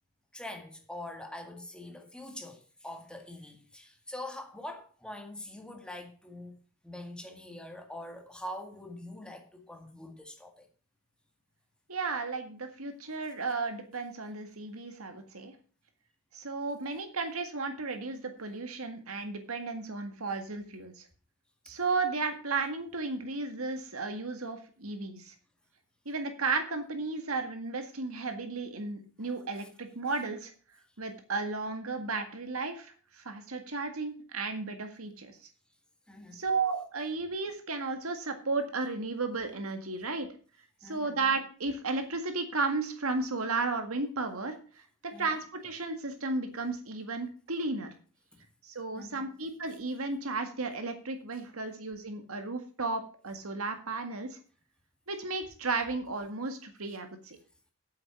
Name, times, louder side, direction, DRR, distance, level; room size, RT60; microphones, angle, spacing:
voice 1, 0.3-6.6 6.8-10.7 36.1-36.4 40.8-41.2 45.1-45.4 48.9-49.3, left 1 dB, 5° left, 1.9 m, -44 dB
voice 2, 11.9-15.5 16.3-21.1 21.7-25.3 26.1-30.5 31.0-35.4 36.3-40.3 40.8-44.6 45.0-47.9 48.6-54.4 55.1-57.4, right 3 dB, 85° right, 1.8 m, -34 dB
8.7 x 7.8 x 6.1 m
head